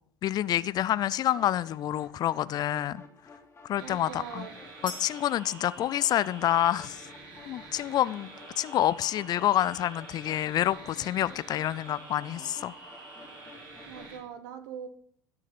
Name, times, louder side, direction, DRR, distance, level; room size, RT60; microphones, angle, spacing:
voice 1, 0.2-3.0 3.7-4.4 5.0-7.1 7.5-8.3 8.6-12.7, left 12 dB, 40° left, 0.4 m, -27 dB
sound 1, 1.4-14.2, left 4 dB, 25° left, 2.6 m, -53 dB
sound 2, 3.8-14.2, right 2 dB, 40° right, 4.7 m, -47 dB
voice 2, 3.8-4.5 13.9-14.9, right 8 dB, 65° right, 1.3 m, -41 dB
sound 3, 4.9-6.8, left 2 dB, 85° left, 2.7 m, -46 dB
12.5 x 6.5 x 5.7 m
figure-of-eight pair, 65°, 11 cm